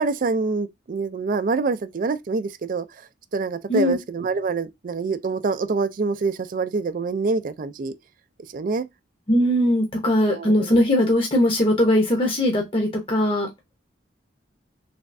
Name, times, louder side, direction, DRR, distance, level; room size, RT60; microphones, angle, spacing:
voice 1, 0.0-2.9 3.3-7.9 8.5-8.8 10.3-10.7, right 4 dB, 45° right, 0.4 m, -25 dB
voice 2, 9.3-13.5, left 1 dB, 30° left, 0.8 m, -20 dB
3.3 x 3.1 x 2.6 m
head